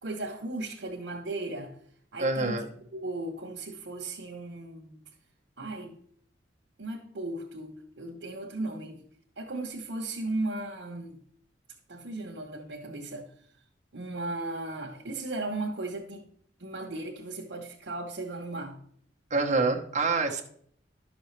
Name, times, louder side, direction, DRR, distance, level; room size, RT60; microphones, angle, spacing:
voice 1, 0.0-1.8 2.1-2.7 2.9-5.0 5.6-6.0 6.8-9.0 9.4-11.2 11.9-13.3 13.9-16.2 16.6-18.8, right 2 dB, 80° right, 1.0 m, -36 dB
voice 2, 2.2-2.6 19.3-20.4, right 3 dB, 40° right, 1.1 m, -26 dB
11.5 x 6.1 x 3.2 m
head